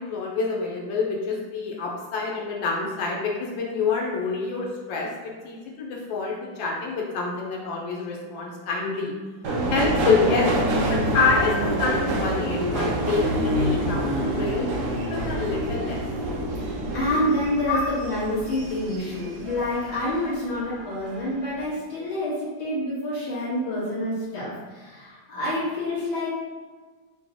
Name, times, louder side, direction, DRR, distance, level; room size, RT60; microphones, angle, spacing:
voice 1, 0.0-9.1 9.7-10.5 10.9-14.7 15.1-16.0 17.7-17.8, left 4 dB, 85° left, -1 dB, 1.5 m, -27 dB
Subway metro underground, 9.4-20.2 20.5-21.2 21.5-21.6, right 1 dB, 70° right, 1.0 m, -27 dB
voice 2, 16.9-26.4, left 1 dB, 60° left, -8 dB, 1.9 m, -27 dB
5.4 x 2.2 x 2.9 m, 1.4 s
omnidirectional pair, 2.0 m